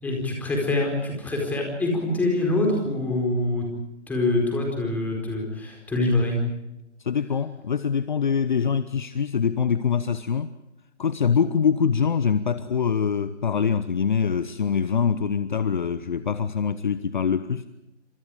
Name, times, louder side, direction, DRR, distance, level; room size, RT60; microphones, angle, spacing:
voice 1, 0.0-3.7 4.1-6.4, left 2 dB, 5° left, 0 dB, 4.6 m, -25 dB
voice 2, 7.0-10.5 11.0-17.6, left 6 dB, 40° left, 13 dB, 1.0 m, -24 dB
27.5 x 27.0 x 5.1 m, 0.89 s
figure-of-eight pair, 150°, 36 cm